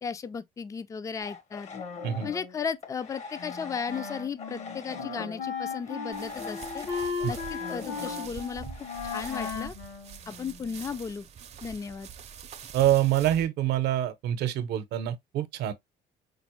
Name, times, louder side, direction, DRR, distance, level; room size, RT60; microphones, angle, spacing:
voice 1, 0.0-1.7 2.2-6.9 7.3-8.6 9.1-9.8 10.3-11.3 11.6-12.1, left 6 dB, 20° left, 0.3 m, -35 dB
sound 1, 1.2-9.5, left 5 dB, 40° left, 0.8 m, -41 dB
Wind instrument woodwind instrument, 3.4-10.9, left 5 dB, 80° left, 1.2 m, -37 dB
sound 2, 6.1-13.5, right 7 dB, 40° right, 0.5 m, -45 dB
voice 2, 12.7-15.7, right 12 dB, 80° right, 0.7 m, -26 dB
5.1 x 2.0 x 3.0 m
cardioid pair, 110°, 17 cm